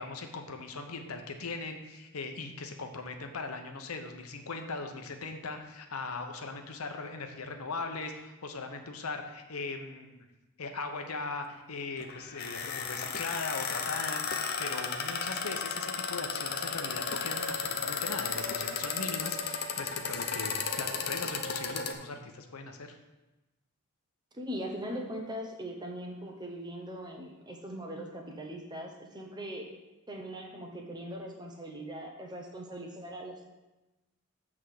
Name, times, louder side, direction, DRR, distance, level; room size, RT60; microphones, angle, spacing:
voice 1, 0.0-10.3 10.6-23.0, left 3 dB, 90° left, 5 dB, 0.9 m, -39 dB
sound 1, 12.0-21.9, left 5 dB, 45° left, 0.6 m, -34 dB
voice 2, 24.3-29.7 30.1-33.5, equal, 20° right, 1 dB, 1.0 m, -40 dB
7.9 x 3.7 x 6.5 m, 1.1 s
head